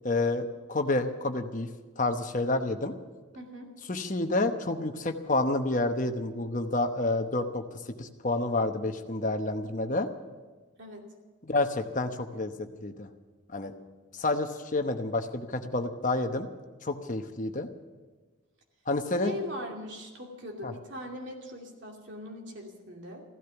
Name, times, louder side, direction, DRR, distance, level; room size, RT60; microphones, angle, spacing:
voice 1, 0.0-1.7 2.0-2.9 3.9-7.6 8.0-10.1 11.4-13.1 13.5-13.7 14.1-16.5 16.8-17.7 18.9-19.4 20.6-20.7, left 2 dB, 35° left, 6 dB, 1.0 m, -29 dB
voice 2, 3.3-3.7 10.8-11.1 19.2-23.2, left 1 dB, 55° right, 1 dB, 2.6 m, -40 dB
15.5 x 13.0 x 7.0 m, 1.3 s
head